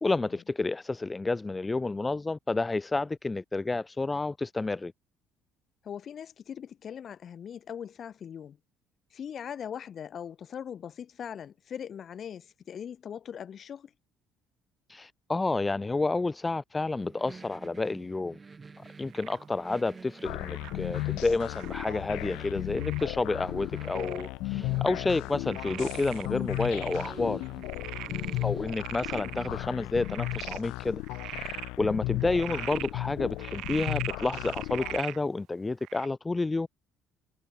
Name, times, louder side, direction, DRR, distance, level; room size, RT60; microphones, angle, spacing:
voice 1, 0.0-4.9 14.9-18.4 19.0-27.4 28.4-36.7, left 3 dB, 20° left, 1.2 m, -30 dB
voice 2, 5.8-8.6 9.1-13.9 28.1-28.5, left 8 dB, 50° left, 5.4 m, -41 dB
sound 1, 17.0-30.6, right 4 dB, 30° right, 5.8 m, -49 dB
Frog, 19.1-19.5 20.4-20.8 21.5-22.0 22.8-23.2 23.8-24.3 24.8-24.9 25.5-27.1 27.4-29.5 30.0-30.6 31.0-31.7 32.2-32.9 33.4-35.2 35.8-36.1, right 16 dB, 70° right, 5.1 m, -40 dB
sound 2, 20.2-35.0, left 22 dB, 80° left, 0.6 m, -35 dB
supercardioid pair, 70°, 0 cm